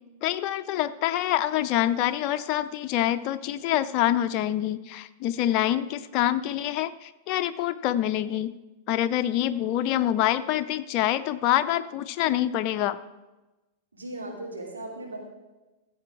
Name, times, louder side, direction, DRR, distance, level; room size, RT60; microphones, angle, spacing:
voice 1, 0.2-8.5 8.9-13.0, left 12 dB, 45° left, 10 dB, 0.5 m, -26 dB
voice 2, 13.9-15.2, right 1 dB, 80° right, -1 dB, 2.9 m, -37 dB
14.5 x 7.8 x 4.8 m, 1.1 s
figure-of-eight pair, 95°, 0 cm